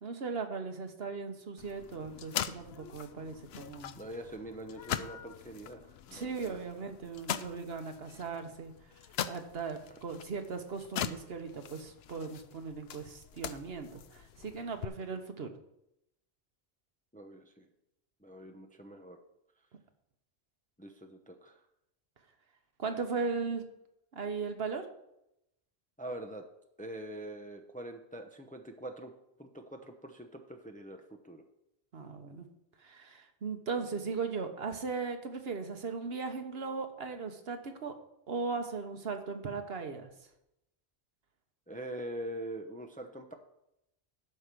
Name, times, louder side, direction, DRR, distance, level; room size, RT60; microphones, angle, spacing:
voice 1, 0.0-3.9 6.1-8.7 9.3-15.5 22.8-23.7 24.1-24.9 31.9-32.5 32.8-37.9 38.3-40.1, right 4 dB, 70° right, 6 dB, 1.3 m, -38 dB
sound 1, 1.6-14.9, left 9 dB, 75° left, 0.8 m, -42 dB
voice 2, 4.0-6.6 17.1-17.7 18.2-19.2 20.8-21.6 26.0-26.4 26.8-29.1 29.4-31.4 41.7-43.3, right 1 dB, 10° left, 4 dB, 0.7 m, -44 dB
12.5 x 5.1 x 6.0 m, 0.83 s
omnidirectional pair, 1.1 m